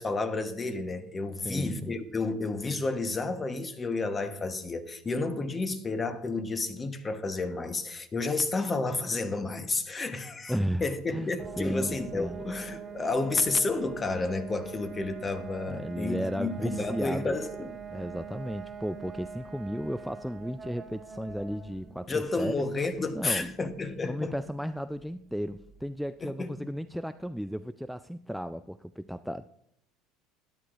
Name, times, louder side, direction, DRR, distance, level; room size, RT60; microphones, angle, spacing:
voice 1, 0.0-10.6 10.8-17.7 22.1-24.4 26.2-26.7, left 3 dB, 25° left, 1.0 m, -31 dB
voice 2, 1.3-2.0 10.5-10.8 11.1-11.3 11.6-12.4 15.7-17.4 17.9-22.6 23.1-23.5 24.0-29.5, equal, ahead, 0.3 m, -34 dB
sound 1, 11.4-26.0, right 6 dB, 30° right, 1.5 m, -44 dB
12.5 x 10.5 x 2.5 m
supercardioid pair, 95°, 0 cm